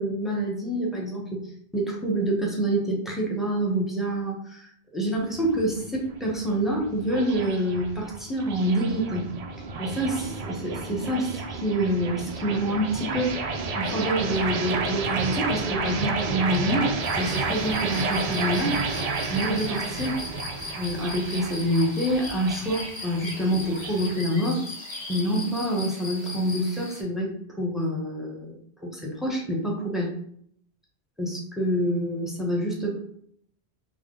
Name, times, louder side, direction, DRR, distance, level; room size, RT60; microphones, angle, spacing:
voice 1, 0.0-1.4 1.7-4.6 4.9-9.3 9.8-13.3 13.8-16.9 17.2-18.8 19.3-20.2 20.7-24.6 25.1-28.5 28.8-30.1 31.2-33.0, right 1 dB, ahead, -2 dB, 0.7 m, -27 dB
sound 1, 5.2-24.1, right 4 dB, 55° right, 0.4 m, -31 dB
sound 2, 17.0-27.0, left 2 dB, 40° left, 1.6 m, -39 dB
3.6 x 2.4 x 3.7 m, 0.66 s
omnidirectional pair, 1.1 m